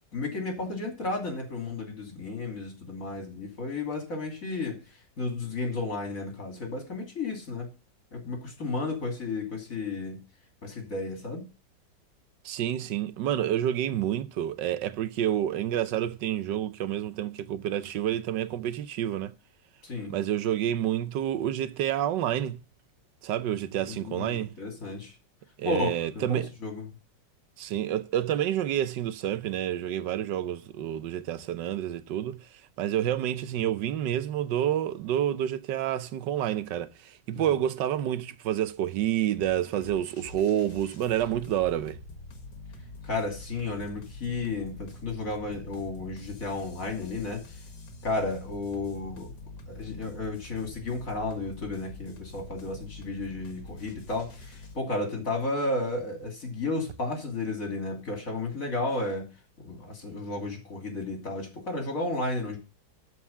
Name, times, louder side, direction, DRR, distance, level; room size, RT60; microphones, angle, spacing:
voice 1, 0.1-4.8 5.2-7.7 8.1-10.2 10.6-11.5 19.8-20.1 24.0-25.1 25.6-26.8 37.3-37.4 43.0-47.6 48.0-49.3 49.7-59.3 59.6-62.6, left 2 dB, 50° left, 3.2 m, -33 dB
voice 2, 12.4-19.3 20.1-22.6 23.2-24.5 25.6-26.5 27.6-32.4 32.8-42.0, right 11 dB, 85° right, 1.4 m, -29 dB
sound 1, 39.3-54.8, left 2 dB, 70° left, 2.2 m, -45 dB
13.0 x 4.8 x 7.1 m
omnidirectional pair, 1.9 m